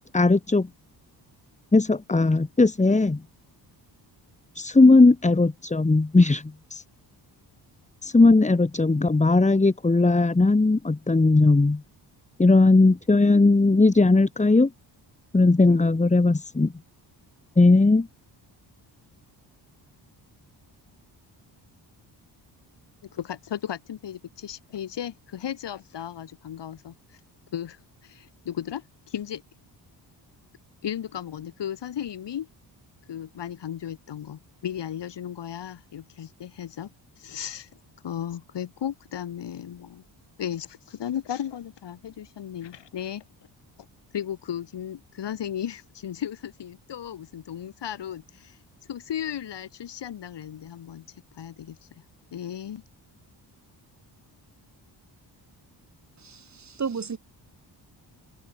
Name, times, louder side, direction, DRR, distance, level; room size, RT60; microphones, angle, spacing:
voice 1, 0.1-0.7 1.7-3.2 4.5-6.8 8.0-11.8 12.4-14.7 15.3-16.7 17.6-18.1, left 3 dB, 15° left, 2.4 m, -18 dB
voice 2, 23.1-26.9 27.5-27.8 28.0-29.4 30.8-32.5 33.1-36.9 37.2-37.7 38.0-40.0 40.4-43.2 44.1-48.5 48.9-51.0 51.4-51.8 52.3-52.8, left 10 dB, 75° left, 4.9 m, -35 dB
voice 3, 56.2-57.2, right 5 dB, 40° right, 5.5 m, -33 dB
open air
cardioid pair, 120°, 43 cm